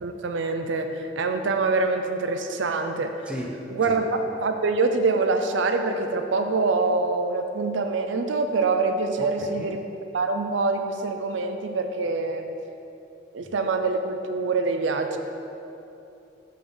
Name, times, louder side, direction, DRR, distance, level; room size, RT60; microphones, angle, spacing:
voice 1, 0.0-3.1 3.7-9.8 10.1-12.5 13.3-15.2, right 3 dB, 65° right, 6 dB, 0.5 m, -25 dB
voice 2, 9.2-9.7 13.4-13.5, equal, 5° right, -1 dB, 0.8 m, -35 dB
9.3 x 3.8 x 7.0 m, 2.8 s
head